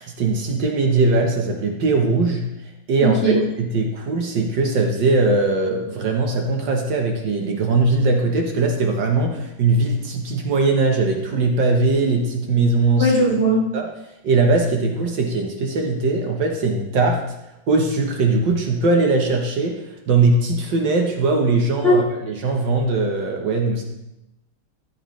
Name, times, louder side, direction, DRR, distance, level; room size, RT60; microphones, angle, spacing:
voice 1, 0.0-2.5 2.9-13.1 13.7-13.9 14.2-17.2 17.7-23.8, right 3 dB, 65° right, 2 dB, 1.7 m, -20 dB
voice 2, 3.0-3.4 13.0-13.7 21.8-22.0, right 1 dB, 30° left, -4 dB, 2.0 m, -18 dB
14.0 x 7.3 x 3.2 m, 0.90 s
omnidirectional pair, 2.3 m